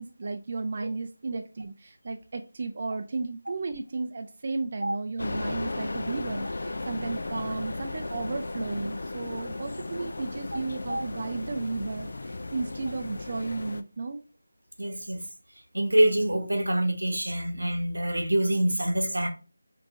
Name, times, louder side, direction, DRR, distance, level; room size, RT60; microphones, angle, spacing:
voice 1, 0.0-14.2, right 3 dB, 45° right, 0.3 m, -34 dB
sound 1, 5.2-13.8, left 2 dB, 60° left, 0.3 m, -35 dB
voice 2, 14.8-15.2 15.7-19.3, right 1 dB, 85° right, 1.0 m, -25 dB
4.8 x 2.5 x 2.4 m
figure-of-eight pair, 165°, 0 cm